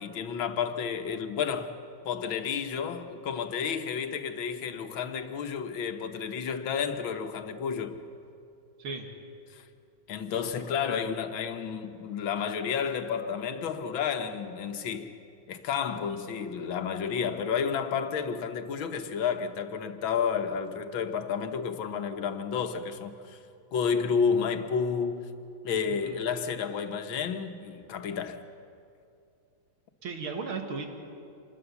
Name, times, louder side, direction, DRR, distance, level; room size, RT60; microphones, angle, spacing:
voice 1, 0.0-1.7 2.1-8.0 9.5-9.6 10.1-15.1 15.5-23.4 23.7-25.3 25.6-28.4, left 6 dB, 75° left, 1.9 m, -31 dB
voice 2, 30.0-30.9, right 4 dB, 85° right, 2.7 m, -35 dB
26.5 x 21.0 x 7.0 m
omnidirectional pair, 2.2 m